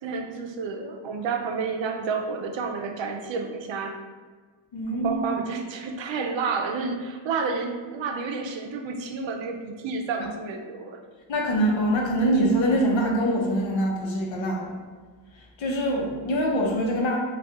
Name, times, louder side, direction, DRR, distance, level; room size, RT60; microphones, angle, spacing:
voice 1, 0.0-4.0 4.9-11.0, right 4 dB, 75° right, 4 dB, 0.5 m, -30 dB
voice 2, 4.7-5.2 11.3-14.7 15.3-17.2, right 1 dB, 80° left, -1 dB, 0.8 m, -24 dB
2.7 x 2.4 x 3.5 m, 1.4 s
wide cardioid pair, 95°, 45 cm